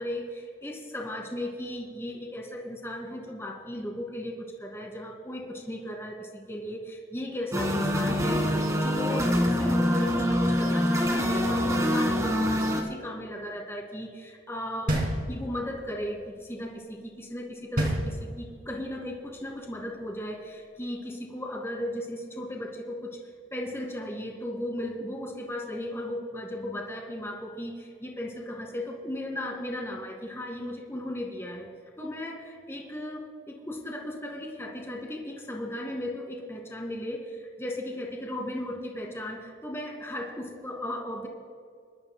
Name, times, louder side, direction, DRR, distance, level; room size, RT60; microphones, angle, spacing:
voice 1, 0.0-8.4 8.7-15.0 15.3-23.2 23.5-31.7 32.0-41.3, left 1 dB, 15° left, 1 dB, 2.1 m, -36 dB
sound 1, 7.5-12.8, equal, 20° right, 1.7 m, -25 dB
sound 2, 14.9-15.8 17.8-18.7, right 1 dB, 50° right, 3.1 m, -28 dB
25.0 x 12.5 x 2.3 m, 2.2 s
head